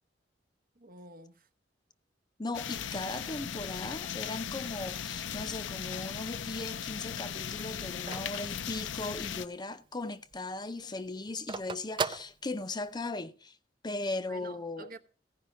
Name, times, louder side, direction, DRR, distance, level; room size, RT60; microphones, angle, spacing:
voice 1, 0.8-1.5 14.2-15.0, right 3 dB, 50° right, 0.9 m, -49 dB
voice 2, 2.4-13.6 13.8-14.9, left 2 dB, 25° left, 0.6 m, -38 dB
sound 1, 2.5-9.5, left 8 dB, 85° left, 0.6 m, -38 dB
Telephone, 6.0-9.5 9.9-10.0 10.2-13.1, right 5 dB, 25° right, 0.4 m, -39 dB
15.5 x 5.3 x 6.9 m
head